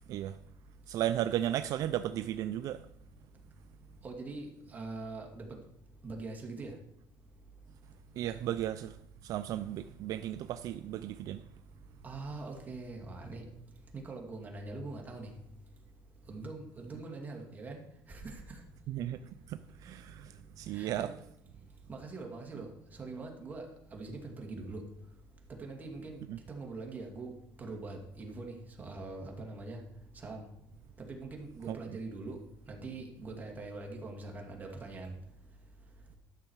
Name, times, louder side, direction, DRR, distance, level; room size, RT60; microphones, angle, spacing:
voice 1, 0.9-2.8 8.2-9.0 9.2-11.4 18.9-19.2 19.5-21.1 26.3-26.4 31.7-31.8, right 12 dB, 60° right, 0.4 m, -35 dB
voice 2, 4.0-5.5 6.0-6.7 12.0-13.4 13.9-15.3 16.3-17.8 18.1-18.6 20.7-21.1 21.9-23.7 23.9-24.8 25.6-26.2 26.5-27.3 27.6-29.8 30.1-30.5 31.0-32.4 32.7-35.1, right 3 dB, 25° right, 2.2 m, -43 dB
12.5 x 6.5 x 4.6 m
cardioid pair, 125°, 7 cm